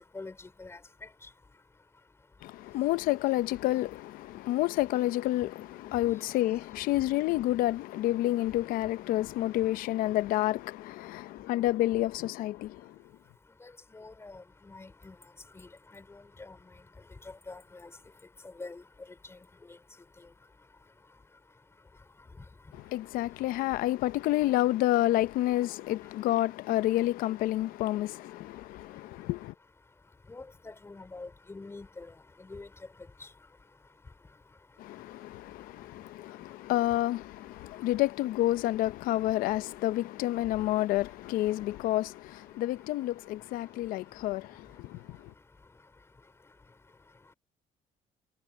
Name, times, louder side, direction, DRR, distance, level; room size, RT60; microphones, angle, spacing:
voice 1, 0.1-0.8 13.6-15.1 15.5-16.6 17.3-17.9 18.6-18.8 30.3-32.1 32.4-32.7, left 3 dB, 20° left, 4.4 m, -45 dB
voice 2, 2.4-13.0 22.7-29.5 34.8-45.3, left 15 dB, 85° left, 0.7 m, -29 dB
cardioid pair, 125°, 14 cm